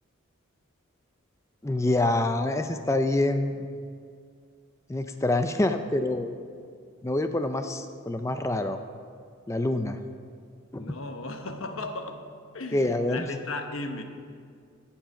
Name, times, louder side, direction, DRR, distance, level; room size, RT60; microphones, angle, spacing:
voice 1, 1.6-3.7 4.9-6.4 7.0-8.8 9.5-10.0 10.7-10.9 12.7-13.3, left 2 dB, 15° left, 8 dB, 0.4 m, -26 dB
voice 2, 10.8-12.3 12.5-14.0, left 2 dB, 75° left, 6 dB, 1.0 m, -36 dB
15.0 x 7.2 x 5.0 m, 2.2 s
head